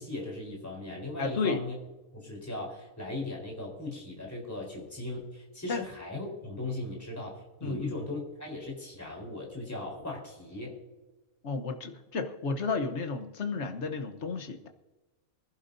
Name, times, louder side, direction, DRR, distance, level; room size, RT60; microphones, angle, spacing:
voice 1, 0.0-1.8 2.1-10.8, left 2 dB, 10° left, -2 dB, 3.9 m, -38 dB
voice 2, 1.2-1.6 5.7-5.8 7.6-8.0 11.4-14.7, left 4 dB, 55° left, 6 dB, 1.3 m, -32 dB
23.5 x 11.0 x 2.7 m, 1.1 s
omnidirectional pair, 1.5 m